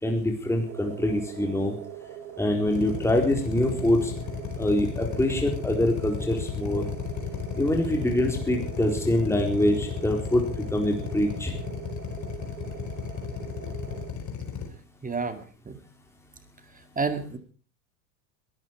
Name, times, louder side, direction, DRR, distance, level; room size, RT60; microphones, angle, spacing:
voice 1, 0.0-1.8 2.4-4.1 4.6-6.8 7.6-11.5, left 1 dB, 5° left, 2 dB, 4.2 m, -25 dB
sound 1, 0.7-14.1, right 10 dB, 80° right, 2.7 m, -42 dB
Drill, 2.7-14.7, left 7 dB, 35° left, 4.8 m, -33 dB
voice 2, 15.0-15.4 15.7-15.8 17.0-17.4, right 4 dB, 15° right, 10 dB, 2.2 m, -29 dB
21.5 x 14.0 x 4.7 m, 0.38 s
hypercardioid pair, 100°, 49 cm